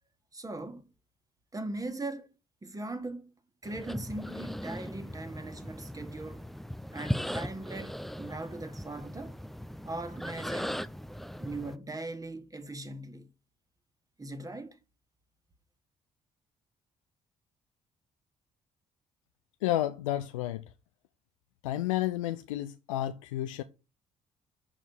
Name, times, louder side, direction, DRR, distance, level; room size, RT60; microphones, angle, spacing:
voice 1, 0.3-0.9 1.5-2.3 2.6-3.3 3.6-6.5 6.9-9.4 9.8-10.9 11.4-13.3 14.2-14.8, right 2 dB, 20° right, 1.6 m, -40 dB
sound 1, 3.6-11.7, equal, ahead, 0.5 m, -38 dB
voice 2, 19.6-20.6 21.6-23.6, left 14 dB, 85° left, 0.4 m, -31 dB
6.2 x 5.2 x 6.1 m
hypercardioid pair, 50°, 16 cm